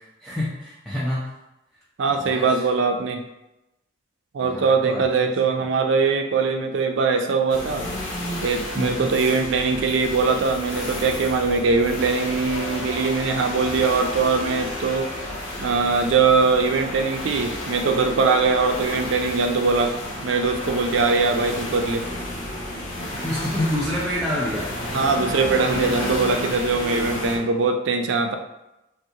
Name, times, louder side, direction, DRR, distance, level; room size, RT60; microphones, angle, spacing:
voice 1, 0.0-1.3 2.1-2.7 4.4-5.7 8.7-9.1 23.2-24.7, left 1 dB, ahead, -9 dB, 0.4 m, -28 dB
voice 2, 2.0-3.2 4.3-7.9 8.4-15.1 15.6-20.0 20.2-22.1 24.9-28.4, right 4 dB, 70° right, 5 dB, 0.4 m, -21 dB
sound 1, 7.5-27.4, left 1 dB, 80° left, 0.7 m, -31 dB
3.2 x 2.4 x 2.8 m, 0.92 s
head